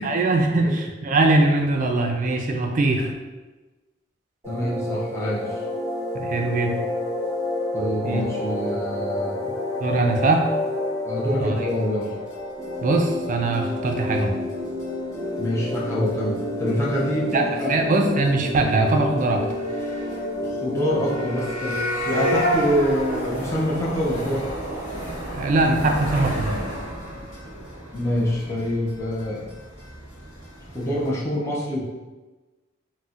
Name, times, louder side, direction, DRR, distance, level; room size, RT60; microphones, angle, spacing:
voice 1, 0.0-3.1 6.1-6.8 8.0-8.2 9.8-10.5 11.4-11.7 12.8-14.4 17.3-19.5 25.3-26.6, right 2 dB, 45° right, 3 dB, 0.4 m, -21 dB
sound 1, 4.4-21.5, left 1 dB, 15° right, 1.0 m, -29 dB
voice 2, 4.5-5.6 7.7-9.6 11.0-12.1 15.4-17.7 20.4-21.8 22.1-24.5 27.9-29.5 30.7-31.8, equal, 15° left, -6 dB, 0.5 m, -26 dB
sound 2, 12.0-12.1 12.3-12.4 12.6-12.7 12.9-13.0 13.2-13.3 13.5-13.6 13.9-14.2 14.5-14.6 14.8-14.9 15.1-15.4 15.7-15.8 16.1-16.7 17.0-17.3 17.6-17.7 17.9-18.0 18.2-18.3 18.6-18.7 18.9-19.0 19.2-31.1, equal, 40° left, 1.3 m, -30 dB
4.0 x 2.1 x 2.4 m, 1.2 s
head